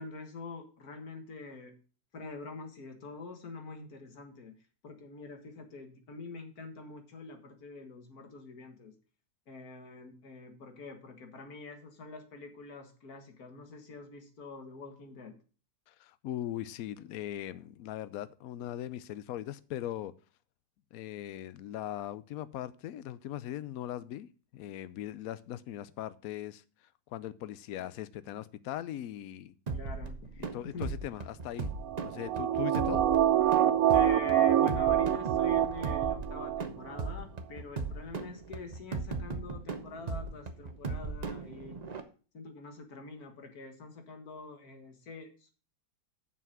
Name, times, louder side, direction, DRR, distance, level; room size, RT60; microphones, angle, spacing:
voice 1, 0.0-1.8 2.1-4.5 4.8-8.9 9.5-15.4 29.7-30.9 33.9-41.8 42.3-45.5, left 4 dB, 55° left, 2.0 m, -46 dB
voice 2, 15.9-20.1 20.9-26.6 27.1-29.5 30.5-31.7 32.0-33.0, left 12 dB, 75° left, 0.8 m, -39 dB
sound 1, 29.7-42.0, right 4 dB, 90° right, 0.3 m, -38 dB
sound 2, 31.8-36.6 37.0-37.1, right 11 dB, 75° right, 0.8 m, -26 dB
7.2 x 5.8 x 6.1 m
omnidirectional pair, 2.0 m